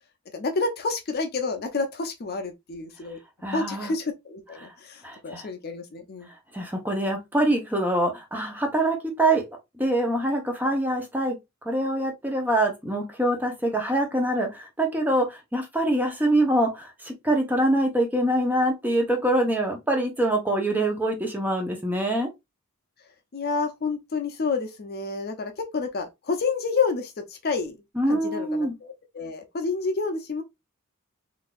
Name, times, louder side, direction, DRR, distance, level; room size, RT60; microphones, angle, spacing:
voice 1, 0.3-3.2 3.5-6.3 23.3-27.8 28.1-30.4, left 4 dB, 45° left, 0.6 m, -29 dB
voice 2, 3.4-3.9 4.6-4.7 5.0-5.5 6.5-9.5 9.8-11.4 11.6-22.3 28.0-28.8, right 1 dB, 10° right, 0.8 m, -24 dB
3.8 x 2.6 x 2.3 m
head